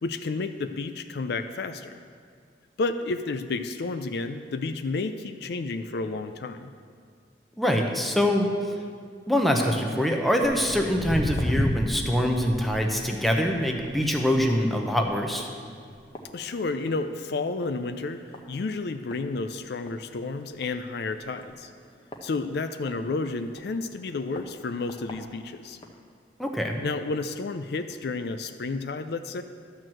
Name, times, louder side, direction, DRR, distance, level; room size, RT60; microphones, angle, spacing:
voice 1, 0.0-1.9 2.8-6.7 16.3-18.2 18.5-21.7 22.2-25.8 26.8-29.4, left 3 dB, 60° left, 9 dB, 0.4 m, -31 dB
voice 2, 7.6-8.5 9.3-15.5 26.4-26.8, equal, ahead, 1 dB, 0.8 m, -24 dB
Walk footsteps, 10.4-17.1 17.4-17.8 18.3-18.4 19.1-19.2 19.6-19.7 19.9-20.0 20.5-20.7 21.4-23.0 23.5-23.6 24.4-24.5 24.9-25.1 25.8-25.9, equal, 25° left, 0.8 m, -33 dB
12.5 x 4.6 x 7.6 m, 2.1 s
head